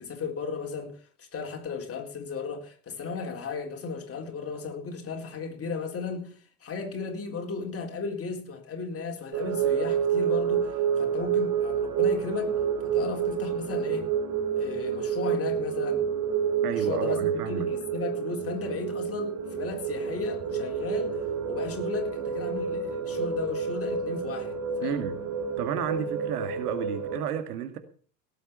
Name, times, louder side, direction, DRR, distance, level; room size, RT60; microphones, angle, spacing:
voice 1, 0.0-12.6 12.8-14.1 14.6-16.0 16.7-21.2 21.5-25.0, left 5 dB, 30° left, 4.0 m, -35 dB
sound 1, 9.3-27.2, right 7 dB, 40° right, 2.5 m, -29 dB
voice 2, 16.6-17.7 24.8-25.2 25.6-27.8, right 9 dB, 65° right, 2.2 m, -32 dB
18.0 x 8.0 x 6.9 m
figure-of-eight pair, 70°, 48 cm